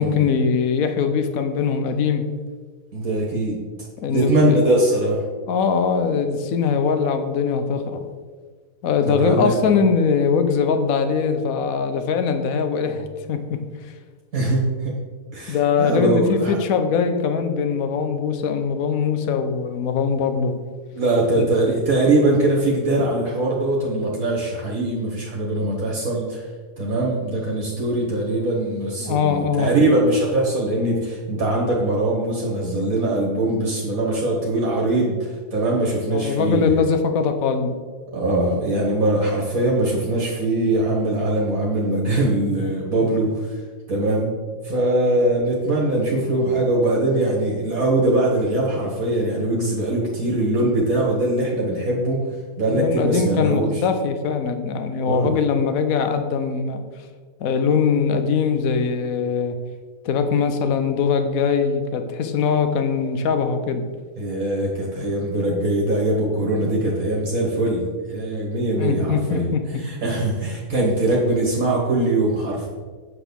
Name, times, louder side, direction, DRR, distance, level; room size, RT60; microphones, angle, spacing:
voice 1, 0.0-2.3 4.0-4.6 5.5-8.0 8.8-13.6 15.5-20.5 21.3-21.5 29.0-29.7 36.1-37.7 43.0-43.1 52.7-56.8 57.4-59.5 60.0-63.8 65.0-65.1 66.6-66.7 68.8-69.8, left 6 dB, 65° left, 7 dB, 1.2 m, -21 dB
voice 2, 2.9-3.6 4.1-5.2 9.0-9.5 14.3-14.9 15.3-16.6 20.9-26.5 26.8-36.7 38.1-43.6 43.9-44.4 44.6-52.2 52.6-53.8 55.0-55.4 64.2-69.5 69.8-72.7, right 2 dB, 60° right, -3 dB, 2.0 m, -22 dB
9.1 x 4.1 x 7.0 m, 1.4 s
omnidirectional pair, 1.7 m